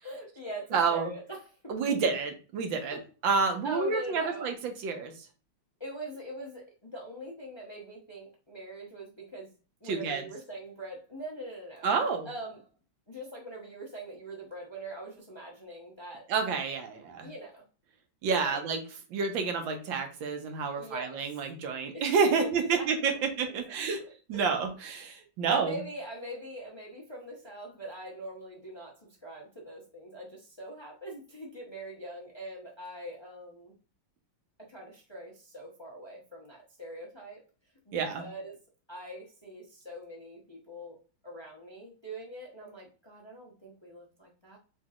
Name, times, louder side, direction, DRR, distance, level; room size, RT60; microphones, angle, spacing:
voice 1, 0.0-1.6 2.9-3.0 3.6-4.5 5.8-9.5 9.8-11.9 12.2-12.7 13.1-16.3 17.2-17.6 18.4-18.6 20.7-21.3 21.9-22.1 22.4-24.0 24.3-24.5 25.2-33.7 34.6-37.4 37.9-38.6 38.9-41.0 41.2-44.6, right 1 dB, 20° left, -2 dB, 0.7 m, -43 dB
voice 2, 0.7-1.1 1.7-3.0 3.2-4.5 4.8-5.1 9.9-10.2 11.8-12.3 16.3-17.3 18.2-18.8 19.1-23.1 23.4-24.0 24.3-25.8 37.9-38.2, right 5 dB, 85° right, 5 dB, 1.7 m, -29 dB
4.6 x 3.9 x 2.4 m, 0.36 s
omnidirectional pair, 2.1 m